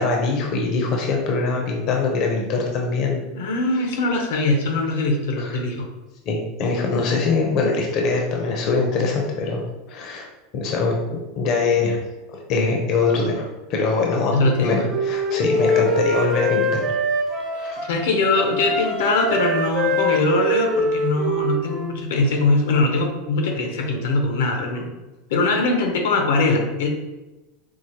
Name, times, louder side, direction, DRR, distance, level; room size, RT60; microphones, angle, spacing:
voice 1, 0.0-3.2 5.4-5.6 6.3-9.6 9.9-10.3 10.5-12.0 12.5-14.8 15.0-16.8 17.5-17.8, left 4 dB, 45° left, 0 dB, 0.5 m, -23 dB
voice 2, 3.3-5.9 14.3-14.9 17.9-24.9 25.3-26.9, left 3 dB, 85° left, 3 dB, 0.7 m, -21 dB
Wind instrument woodwind instrument, 14.4-18.0 18.4-22.0, equal, 25° right, 0.7 m, -23 dB
4.7 x 2.0 x 2.8 m, 1.1 s
supercardioid pair, 155°, 0 cm